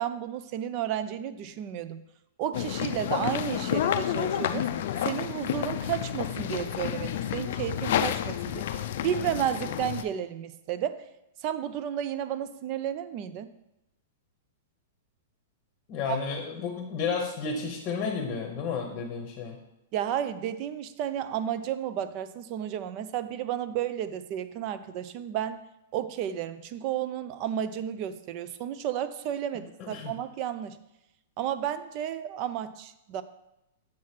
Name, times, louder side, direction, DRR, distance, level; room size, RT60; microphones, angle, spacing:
voice 1, 0.0-2.0 2.4-4.7 5.0-11.0 11.4-13.5 16.0-16.2 19.9-25.6 25.9-30.8 31.4-33.2, right 10 dB, 35° right, 13 dB, 0.4 m, -32 dB
sound 1, 2.5-10.0, left 10 dB, 60° left, 0.4 m, -30 dB
voice 2, 15.9-19.6 29.8-30.1, left 5 dB, 30° left, 2 dB, 0.9 m, -32 dB
7.3 x 3.1 x 5.8 m, 0.89 s
hypercardioid pair, 155°, 0 cm